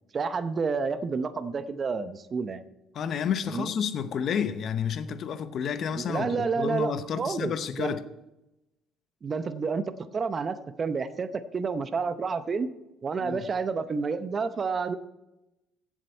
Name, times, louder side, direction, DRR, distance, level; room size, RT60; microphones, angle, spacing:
voice 1, 0.1-2.6 3.5-3.7 5.9-8.0 9.2-12.7 13.0-15.0, right 5 dB, 35° right, 0.8 m, -30 dB
voice 2, 2.9-8.0 13.2-13.5, left 7 dB, 55° left, 0.8 m, -30 dB
15.5 x 7.4 x 4.5 m
supercardioid pair, 90°, 0 cm